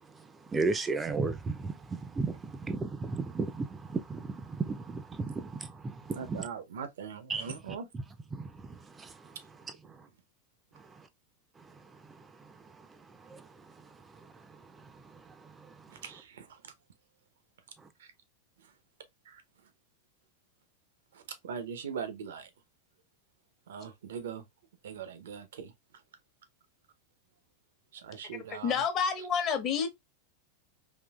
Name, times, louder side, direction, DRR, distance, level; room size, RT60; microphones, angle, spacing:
voice 1, 0.5-6.5 7.3-7.5 8.3-9.3 13.2-13.5 15.1-15.2, right 3 dB, 20° right, 0.4 m, -34 dB
voice 2, 6.1-7.9 16.0-16.6 18.0-18.1 19.3-19.4 21.1-22.5 23.7-24.4 24.8-25.7 27.9-28.8, right 7 dB, 80° right, 0.8 m, -41 dB
voice 3, 28.3-29.9, left 7 dB, 40° left, 1.0 m, -29 dB
3.7 x 2.6 x 2.4 m
hypercardioid pair, 110°, 0 cm